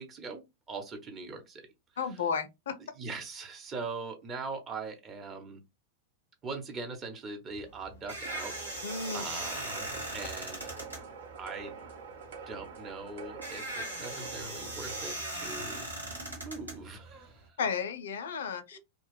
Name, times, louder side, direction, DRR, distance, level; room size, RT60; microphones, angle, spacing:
voice 1, 0.0-1.7 2.1-2.2 3.0-5.6 6.4-10.6 11.4-11.8 12.5-17.6 18.7-18.8, right 4 dB, 25° right, 1.0 m, -41 dB
voice 2, 2.0-2.8 8.8-9.2 17.6-18.8, left 6 dB, 60° left, 0.5 m, -33 dB
sound 1, 7.5-17.4, right 1 dB, 85° right, 1.3 m, -39 dB
sound 2, 8.2-15.1, right 5 dB, 60° right, 0.8 m, -45 dB
3.1 x 2.2 x 3.3 m
figure-of-eight pair, 90°, 0 cm